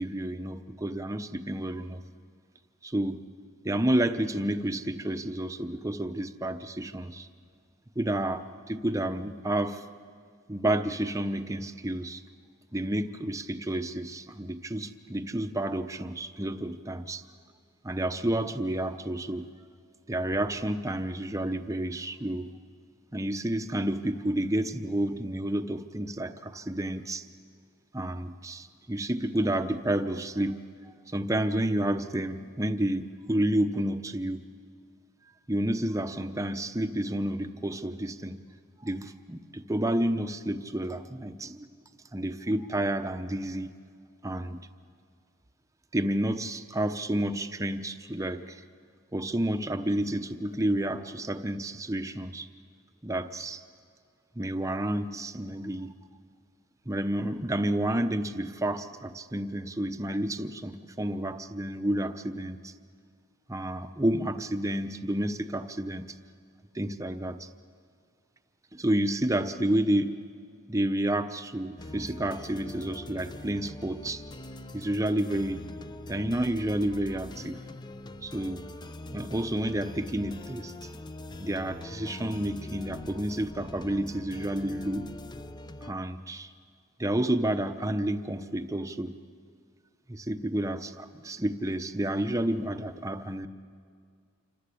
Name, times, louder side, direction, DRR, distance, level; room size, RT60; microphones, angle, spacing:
voice 1, 0.0-2.0 2.8-3.2 3.6-7.3 8.0-9.8 10.5-12.2 12.7-17.2 17.8-19.5 20.1-22.5 23.1-27.2 27.9-34.5 35.5-38.4 38.8-41.7 42.1-43.7 44.2-44.7 45.9-48.6 49.1-52.5 53.0-53.6 54.4-55.9 56.9-62.7 63.5-66.1 66.7-67.5 68.7-70.2 70.7-74.2 74.7-75.7 76.1-77.6 78.2-78.7 79.1-80.7 81.4-85.1 85.8-86.5 87.0-89.2 90.1-93.5, right 1 dB, 15° right, 8 dB, 0.8 m, -30 dB
sound 1, 71.8-85.9, left 2 dB, 20° left, 0.6 m, -43 dB
27.5 x 25.0 x 8.5 m, 2.1 s
head